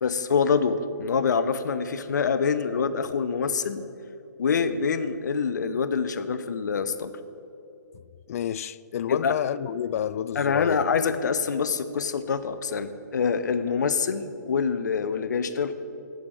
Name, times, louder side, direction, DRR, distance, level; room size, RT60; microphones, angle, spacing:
voice 1, 0.0-3.8 4.4-7.1 9.1-9.3 10.4-15.7, left 5 dB, 75° left, 0.8 m, -25 dB
voice 2, 8.3-10.8, left 10 dB, 50° left, 0.3 m, -29 dB
8.5 x 7.8 x 8.8 m
hypercardioid pair, 140°, 10 cm